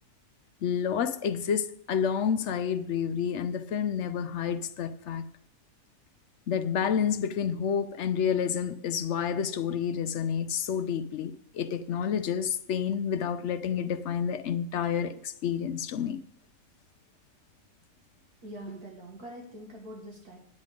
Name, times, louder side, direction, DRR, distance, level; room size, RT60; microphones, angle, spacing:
voice 1, 0.6-5.3 6.5-16.2, left 7 dB, 65° left, 0.7 m, -29 dB
voice 2, 18.4-20.4, right 1 dB, 70° right, 2.3 m, -43 dB
9.6 x 8.5 x 5.1 m
omnidirectional pair, 1.7 m